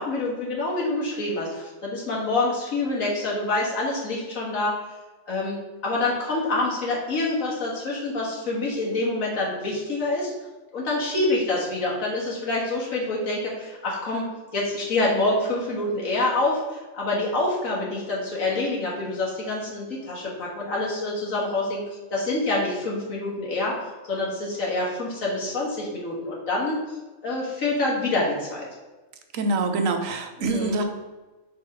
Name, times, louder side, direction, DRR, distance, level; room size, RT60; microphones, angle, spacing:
voice 1, 0.0-4.7 5.3-10.3 10.7-21.8 22.1-23.7 24.1-26.8 27.2-28.7 30.4-30.8, left 2 dB, 90° left, -4 dB, 2.0 m, -26 dB
voice 2, 29.3-30.8, right 3 dB, 80° right, 6 dB, 1.2 m, -25 dB
4.7 x 4.4 x 5.4 m, 1.2 s
omnidirectional pair, 1.4 m